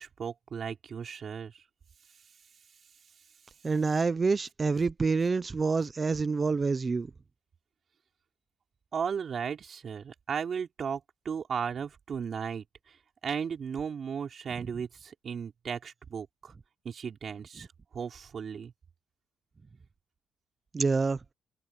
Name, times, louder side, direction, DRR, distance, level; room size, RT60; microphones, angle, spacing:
voice 1, 0.0-1.6 8.9-16.5 16.8-17.7 17.9-18.7, right 7 dB, 50° right, 5.3 m, -36 dB
voice 2, 3.6-7.1 20.7-21.2, right 4 dB, 30° right, 0.7 m, -27 dB
cardioid pair, 90°, 0 cm